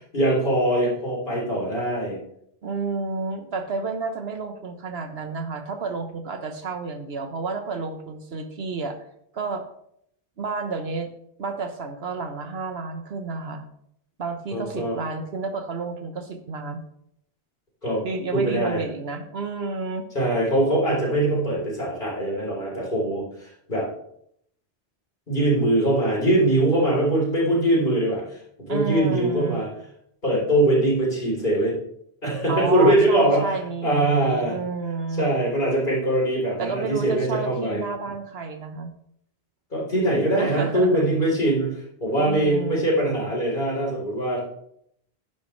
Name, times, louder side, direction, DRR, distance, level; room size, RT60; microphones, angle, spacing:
voice 1, 0.1-2.2 14.5-14.9 17.8-18.0 18.3-18.8 20.1-23.9 25.3-29.7 30.2-31.8 32.2-33.4 33.8-34.6 35.1-37.8 39.7-44.4, right 1 dB, 50° left, -3 dB, 3.9 m, -22 dB
voice 2, 2.6-9.0 9.3-9.6 10.4-11.1 11.4-13.6 14.2-16.8 18.0-20.1 28.7-29.6 32.5-35.3 36.6-38.9 40.4-41.1 42.2-42.9, right 4 dB, 75° right, 7 dB, 1.3 m, -30 dB
11.5 x 10.0 x 3.2 m, 0.72 s
omnidirectional pair, 1.1 m